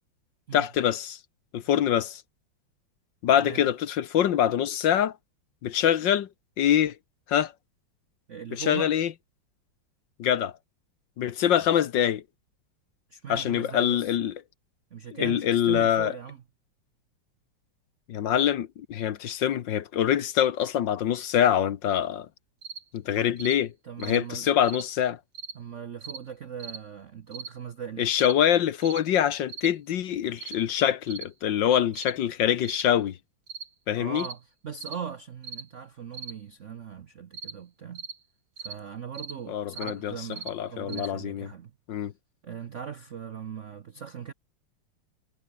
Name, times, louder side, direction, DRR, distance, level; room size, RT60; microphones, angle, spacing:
voice 1, 0.5-1.2 1.5-2.2 3.2-5.1 5.6-6.3 6.6-7.0 7.3-7.5 8.5-9.1 10.2-10.5 11.2-12.2 13.3-14.3 15.1-16.1 18.1-22.3 22.9-23.7 24.0-25.2 28.0-33.2 33.9-34.3 39.5-41.5 41.9-42.1, left 10 dB, 65° left, 1.6 m, -24 dB
voice 2, 8.3-8.9 13.1-14.1 14.9-16.4 23.2-23.4 23.8-24.5 25.5-28.1 33.9-38.1 38.6-41.7 42.4-44.3, right 7 dB, 60° right, 0.8 m, -39 dB
sound 1, 22.6-22.8 23.4-23.6 24.0-24.2 24.6-24.9 25.3-25.6 26.0-26.2 26.6-26.8 27.3-27.5 28.2-28.4 28.8-29.0 29.5-29.7 30.4-30.6 31.1-31.3 31.9-32.2 32.6-32.9 33.5-33.7 34.2-34.4 34.8-35.0 35.4-35.6 36.1-36.3 37.3-37.6 37.9-38.2 38.6-38.8 39.1-39.4 39.7-39.9 40.3-40.5 40.9-41.1, right 6 dB, 90° right, 3.8 m, -39 dB
omnidirectional pair, 2.3 m